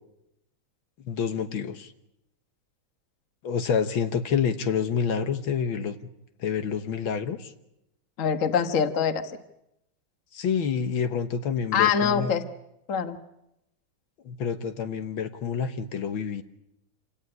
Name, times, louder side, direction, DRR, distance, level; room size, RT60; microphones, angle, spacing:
voice 1, 1.1-1.9 3.4-6.0 6.4-7.5 10.3-12.3 14.3-16.4, left 7 dB, 75° left, 9 dB, 2.0 m, -28 dB
voice 2, 8.2-9.3 11.7-12.4 12.9-13.2, left 7 dB, 45° left, 9 dB, 1.5 m, -24 dB
27.5 x 17.5 x 9.7 m, 0.86 s
omnidirectional pair, 2.2 m